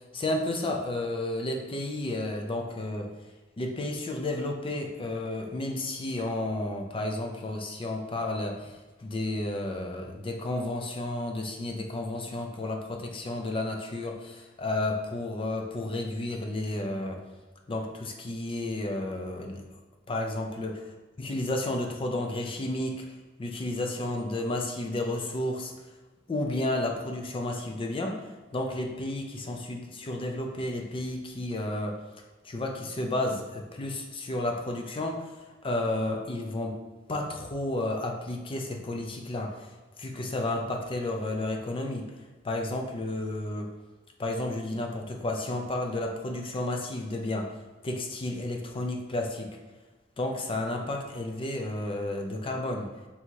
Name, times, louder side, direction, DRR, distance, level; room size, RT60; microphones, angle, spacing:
voice 1, 0.1-3.1 3.6-17.2 17.7-19.6 20.1-20.8 21.2-23.0 23.4-25.7 26.3-28.2 28.5-32.0 32.4-35.3 35.6-36.8 37.1-39.7 40.0-42.1 42.4-43.7 44.2-47.5 47.8-49.5 50.2-52.9, left 1 dB, 25° left, 2 dB, 0.4 m, -32 dB
3.5 x 2.8 x 4.5 m, 1.2 s
head